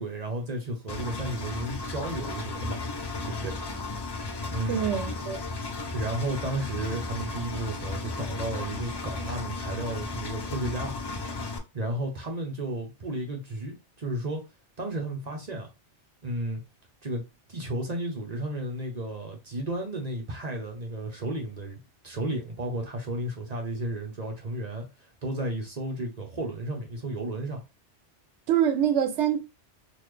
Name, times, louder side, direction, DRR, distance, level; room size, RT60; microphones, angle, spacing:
voice 1, 0.0-2.8 3.2-3.6 4.5-5.0 5.9-11.0 11.7-14.4 14.8-15.7 16.2-16.6 17.0-17.2 17.5-24.9 25.2-27.6, right 1 dB, 40° right, 0.8 m, -33 dB
Engine, 0.9-11.6, left 3 dB, 40° left, 0.4 m, -34 dB
voice 2, 4.7-5.4 28.5-29.4, right 9 dB, 85° right, 0.9 m, -25 dB
3.9 x 2.4 x 3.2 m
omnidirectional pair, 1.2 m